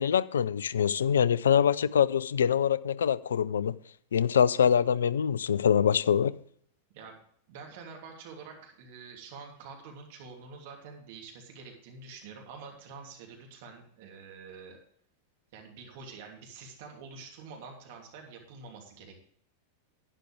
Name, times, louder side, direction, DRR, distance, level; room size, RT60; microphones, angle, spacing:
voice 1, 0.0-3.8 4.1-6.4, left 8 dB, 65° left, 0.4 m, -24 dB
voice 2, 7.5-14.8 15.5-19.1, right 5 dB, 50° right, 2.9 m, -47 dB
11.5 x 9.9 x 3.4 m
figure-of-eight pair, 90°, 0 cm